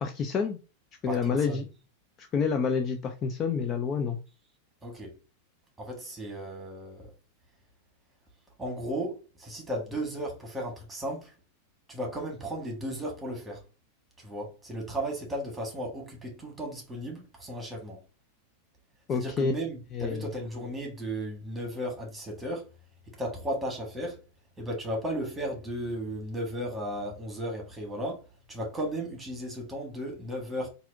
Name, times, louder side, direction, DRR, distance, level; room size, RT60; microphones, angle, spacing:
voice 1, 0.0-0.6 1.0-1.6 2.2-4.2 19.1-19.5 19.9-20.2, left 5 dB, 30° left, 0.4 m, -28 dB
voice 2, 1.1-1.6 4.8-5.2 5.8-7.1 8.6-11.3 11.9-13.6 14.2-18.0 19.1-22.7 23.2-24.2 24.6-30.7, right 1 dB, 10° right, 1.4 m, -35 dB
4.0 x 2.5 x 2.6 m
figure-of-eight pair, 90°, 0 cm